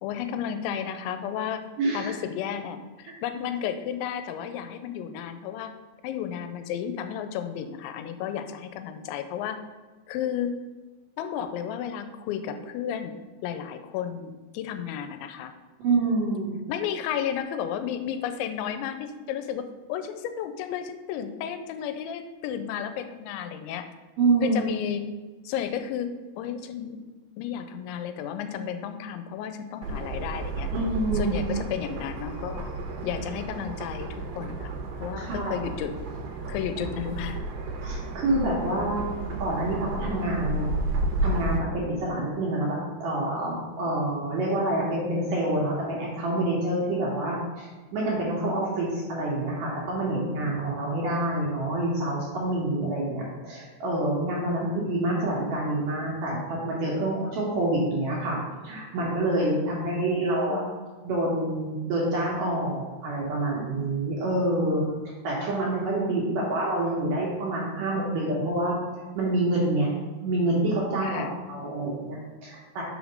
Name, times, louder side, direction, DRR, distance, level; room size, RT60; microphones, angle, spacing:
voice 1, 0.0-1.6 1.9-5.7 6.0-9.6 10.1-10.6 11.2-13.2 13.4-15.5 16.7-23.9 24.4-25.1 25.4-27.0 27.4-30.7 31.2-32.6 33.0-34.7 35.0-35.9 36.5-37.4 59.7-60.7 66.1-66.5 71.0-71.4, left 9 dB, 85° left, 8 dB, 2.9 m, -33 dB
voice 2, 1.8-2.2 15.8-16.6 24.2-24.6 30.7-31.3 35.2-35.6 37.8-39.1 39.4-40.7 41.2-58.4 58.6-60.6 61.0-64.8 65.2-69.9 70.2-72.8, right 2 dB, 65° right, -5 dB, 2.3 m, -27 dB
sound 1, 29.8-41.6, right 2 dB, 80° right, 2.9 m, -32 dB
6.5 x 5.0 x 5.1 m, 1.3 s
omnidirectional pair, 5.2 m